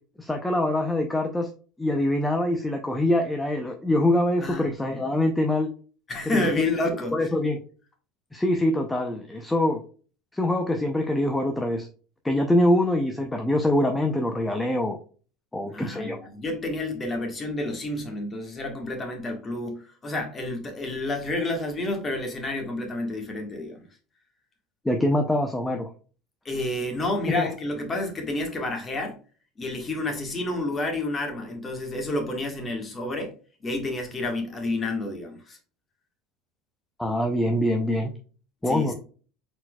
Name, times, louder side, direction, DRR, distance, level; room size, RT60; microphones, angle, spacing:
voice 1, 0.2-1.5 1.8-5.7 6.3-6.5 7.1-7.6 8.3-9.8 10.3-11.9 12.2-15.0 15.5-16.2 24.8-25.9 27.3-27.5 37.0-38.1 38.6-38.9, left 1 dB, 5° left, 0.6 m, -24 dB
voice 2, 4.4-4.7 6.1-7.1 15.7-23.9 26.4-29.2 29.6-33.3 33.6-35.6 38.7-38.9, left 2 dB, 25° left, 1.4 m, -29 dB
4.3 x 4.2 x 2.3 m
supercardioid pair, 130°, 0 cm